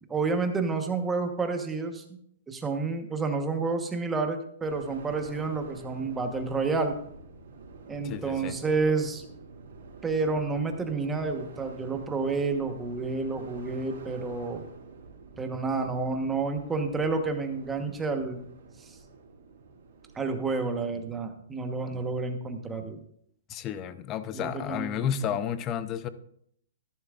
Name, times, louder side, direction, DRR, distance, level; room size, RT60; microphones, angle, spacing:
voice 1, 0.1-2.0 2.5-7.0 7.9-9.2 10.0-14.6 15.4-18.5 18.8-18.9 20.1-23.0 24.3-25.4, right 4 dB, 10° right, 1.2 m, -30 dB
sound 1, 4.6-20.6, right 4 dB, 75° right, 3.9 m, -48 dB
voice 2, 8.0-8.6 23.5-26.1, left 9 dB, 25° left, 0.6 m, -32 dB
13.5 x 11.0 x 2.5 m
hypercardioid pair, 145°, 0 cm